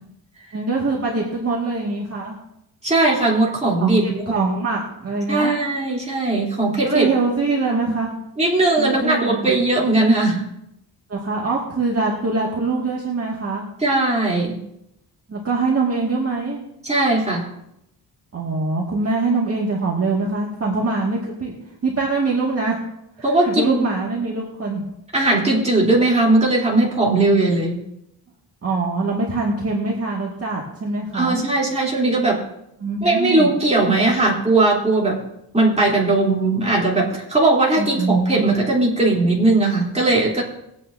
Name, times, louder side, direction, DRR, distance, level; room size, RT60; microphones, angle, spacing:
voice 1, 0.5-2.4 3.8-5.6 6.9-8.1 8.8-9.5 11.1-13.7 15.3-16.6 18.3-22.8 23.2-24.8 28.6-31.4 32.8-33.5 37.8-38.5, right 3 dB, 35° right, -3 dB, 2.0 m, -23 dB
voice 2, 2.8-4.2 5.3-7.1 7.7-7.9 8.4-10.4 13.8-14.6 16.8-17.5 23.2-23.9 25.1-27.8 31.1-32.4 33.0-35.2 35.5-40.4, right 2 dB, 15° right, -4 dB, 3.3 m, -19 dB
21.5 x 8.9 x 2.7 m, 0.81 s
wide cardioid pair, 125°, 41 cm